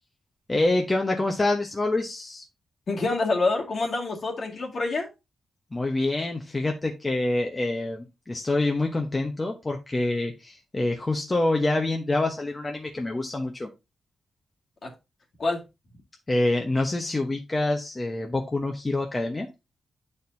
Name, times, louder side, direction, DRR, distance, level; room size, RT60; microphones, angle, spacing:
voice 1, 0.5-2.4 5.7-13.7 16.3-19.5, left 2 dB, 20° left, 1.0 m, -26 dB
voice 2, 2.9-5.1 14.8-14.9 15.4-15.6, left 3 dB, 50° left, 2.0 m, -26 dB
10.0 x 4.4 x 2.7 m
wide cardioid pair, 115°, 0 cm